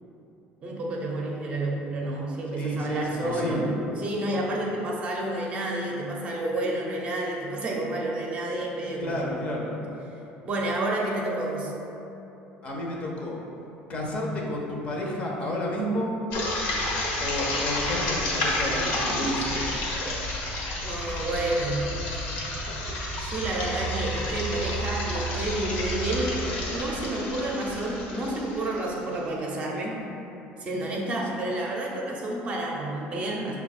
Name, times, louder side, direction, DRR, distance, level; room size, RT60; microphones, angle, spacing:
voice 1, 0.6-9.3 10.4-11.7 20.8-21.9 23.2-30.0 30.6-33.6, right 1 dB, 35° right, -2 dB, 0.6 m, -30 dB
voice 2, 2.5-3.7 9.0-9.7 12.6-13.4 13.9-16.1 17.2-19.6, left 1 dB, 35° left, -2 dB, 0.7 m, -31 dB
sound 1, 16.3-29.1, left 1 dB, 70° left, 1.1 m, -30 dB
5.5 x 2.3 x 4.1 m, 3.0 s
cardioid pair, 145°, 4 cm